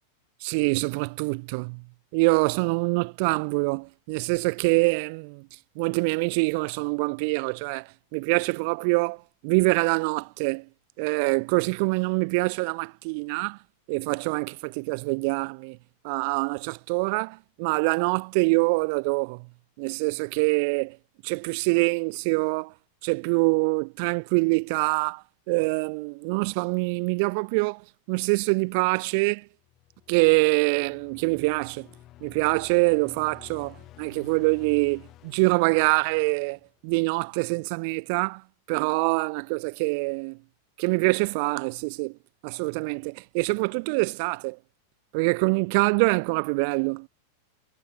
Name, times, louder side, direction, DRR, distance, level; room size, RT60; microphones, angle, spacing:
voice 1, 0.4-1.8 2.1-5.5 5.8-10.6 11.0-13.6 13.9-15.8 16.0-19.5 19.8-21.0 21.2-22.7 23.0-27.8 28.1-29.4 30.1-31.9 32.2-38.4 38.7-40.4 40.8-42.1 42.4-44.6 45.1-47.1, right 32 dB, 45° right, 0.6 m, -25 dB
sound 1, 29.6-37.0, left 15 dB, 35° left, 3.8 m, -51 dB
figure-of-eight pair, 90°, 0 cm